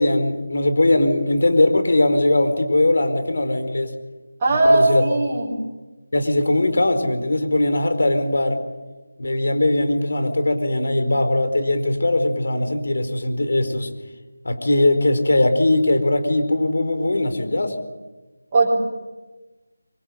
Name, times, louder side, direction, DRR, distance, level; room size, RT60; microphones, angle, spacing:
voice 1, 0.0-3.9 4.6-5.0 6.1-8.6 9.2-13.9 14.4-17.7, left 2 dB, 65° left, 8 dB, 4.5 m, -20 dB
voice 2, 4.4-5.5 18.5-18.7, right 2 dB, 20° right, -6 dB, 4.3 m, -17 dB
24.5 x 24.0 x 7.8 m, 1.2 s
figure-of-eight pair, 170°, 0 cm